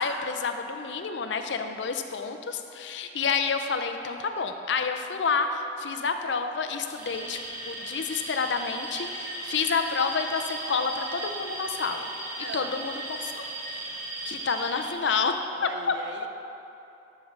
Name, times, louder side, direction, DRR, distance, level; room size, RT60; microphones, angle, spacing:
voice 1, 0.0-7.4 7.7-12.1 12.5-13.4 14.3-15.4 15.9-16.0, left 5 dB, 80° left, 7 dB, 0.6 m, -29 dB
Alarm, 6.9-14.9, right 2 dB, 50° right, 1.8 m, -36 dB
voice 2, 12.4-12.7 15.5-16.3, right 3 dB, 75° right, 5 dB, 0.6 m, -40 dB
11.5 x 6.7 x 3.3 m, 2.8 s
head